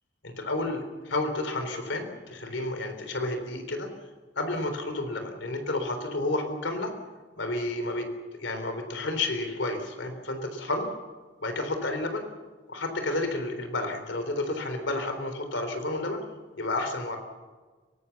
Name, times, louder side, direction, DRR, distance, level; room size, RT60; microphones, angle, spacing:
voice 1, 0.2-3.9 4.4-6.9 7.4-8.1 8.4-10.9 11.4-12.2 12.7-16.2 16.6-17.2, left 2 dB, 85° left, 6 dB, 3.7 m, -31 dB
23.5 x 18.5 x 7.2 m, 1.4 s
head